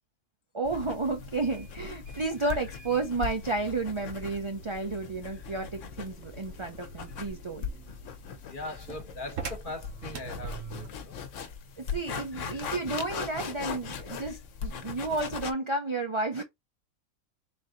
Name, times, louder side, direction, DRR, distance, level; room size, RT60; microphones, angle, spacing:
voice 1, 0.5-7.6 11.8-16.4, right 3 dB, 45° right, 0.4 m, -32 dB
sound 1, 0.6-15.5, left 6 dB, 70° left, 1.0 m, -40 dB
sound 2, 1.2-11.1, right 6 dB, 70° right, 1.2 m, -45 dB
voice 2, 2.4-2.8 5.2-5.6 8.5-11.2 12.3-12.6 14.2-14.4, left 2 dB, 40° left, 1.2 m, -42 dB
3.9 x 2.7 x 3.6 m
omnidirectional pair, 1.4 m